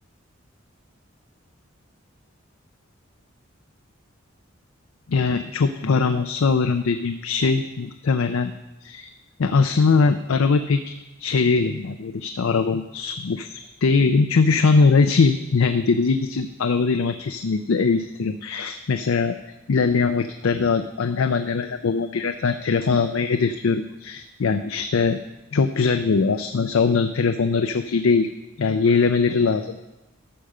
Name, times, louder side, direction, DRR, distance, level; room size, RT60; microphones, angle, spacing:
voice 1, 5.1-8.5 8.8-9.1 9.4-19.4 19.7-25.2 25.5-28.3 28.6-29.8, left 4 dB, 90° left, 8 dB, 0.5 m, -21 dB
13.5 x 5.0 x 6.5 m, 1.0 s
head